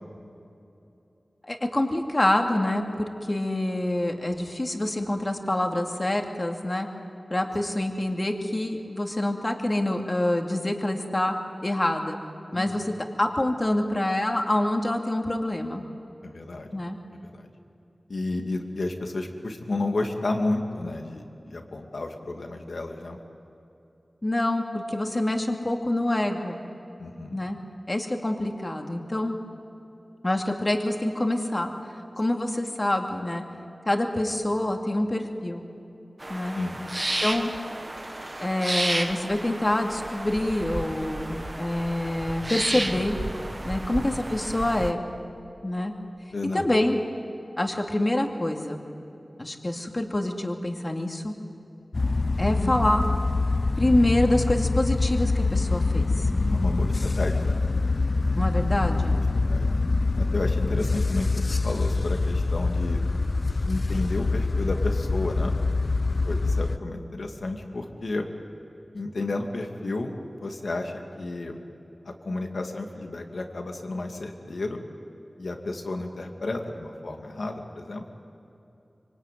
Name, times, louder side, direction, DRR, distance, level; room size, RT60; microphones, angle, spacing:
voice 1, 1.4-6.9 7.3-11.4 11.6-12.2 12.5-15.8 16.7-17.0 24.2-26.6 27.3-27.6 27.9-29.4 30.2-31.7 32.2-33.4 33.9-35.6 36.3-36.6 37.2-37.5 38.4-43.2 43.6-45.0 45.6-45.9 46.5-47.0 47.6-48.8 49.4-51.3 52.4-53.1 53.8-56.3 58.4-59.2, left 1 dB, 30° left, 3 dB, 2.5 m, -26 dB
voice 2, 12.5-12.8 16.2-16.7 17.2-17.5 18.1-23.2 27.0-27.4 36.5-36.8 46.3-46.7 52.6-52.7 56.2-57.6 59.0-59.2 59.5-59.7 60.2-63.0 63.7-65.5 66.3-68.3 68.9-70.1 70.4-71.6 72.0-74.8 75.4-78.0, left 2 dB, 80° left, 3 dB, 2.5 m, -32 dB
sound 1, 36.2-44.9, right 1 dB, 30° right, 1.5 m, -32 dB
sound 2, 51.9-66.8, left 3 dB, 50° left, 0.7 m, -25 dB
25.0 x 24.5 x 9.4 m, 2.9 s
wide cardioid pair, 75°, 0 cm